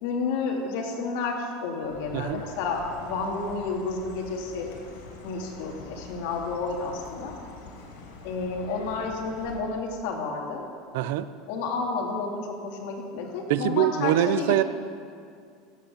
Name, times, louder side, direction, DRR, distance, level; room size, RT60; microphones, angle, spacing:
voice 1, 0.0-4.7 5.2-7.3 8.2-10.7 11.5-14.6, left 4 dB, 55° left, 0 dB, 2.6 m, -31 dB
Chirp tweet, 1.8-9.6, left 4 dB, 85° left, 2.9 m, -45 dB
voice 2, 10.9-11.3 13.5-14.6, right 13 dB, 65° right, 14 dB, 0.5 m, -24 dB
15.0 x 8.9 x 6.6 m, 2.3 s
supercardioid pair, 170°, 0 cm